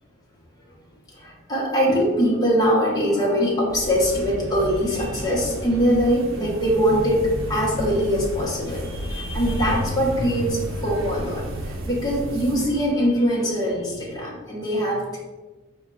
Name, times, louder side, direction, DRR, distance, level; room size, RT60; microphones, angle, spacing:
voice 1, 1.1-15.2, equal, 20° left, -5 dB, 1.0 m, -22 dB
sound 1, 3.7-12.7, equal, 75° right, 0.6 m, -32 dB
4.4 x 2.2 x 3.7 m, 1.2 s
head